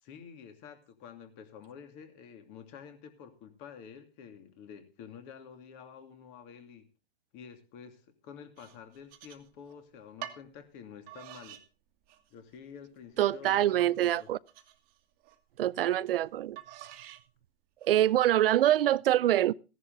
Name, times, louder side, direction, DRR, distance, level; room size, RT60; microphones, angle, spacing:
voice 1, 0.0-6.9 7.3-11.6 12.3-14.3, left 7 dB, 35° left, 2.6 m, -49 dB
sound 1, 8.6-9.8 10.2-10.4 11.1-11.6 12.1-12.6 13.1-13.2 13.8-15.4 16.6-17.3 17.8-18.3, right 13 dB, 30° right, 1.7 m, -48 dB
voice 2, 13.2-14.4 15.6-17.2 17.8-19.5, right 12 dB, 65° right, 0.5 m, -25 dB
16.0 x 11.0 x 3.9 m
hypercardioid pair, 135°, 31 cm